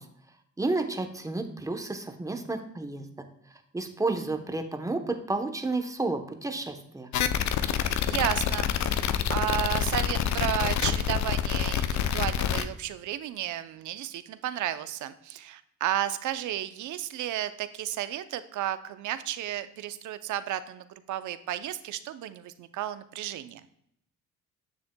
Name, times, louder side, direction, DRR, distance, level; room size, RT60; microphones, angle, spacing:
voice 1, 0.6-3.1 3.7-7.1, right 2 dB, 10° right, 6 dB, 0.9 m, -31 dB
sound 1, 7.1-12.6, left 9 dB, 65° left, 0.6 m, -27 dB
voice 2, 7.7-8.7 9.0-23.6, right 12 dB, 75° right, 13 dB, 0.6 m, -33 dB
9.4 x 7.0 x 2.2 m, 0.74 s
cardioid pair, 90°, 30 cm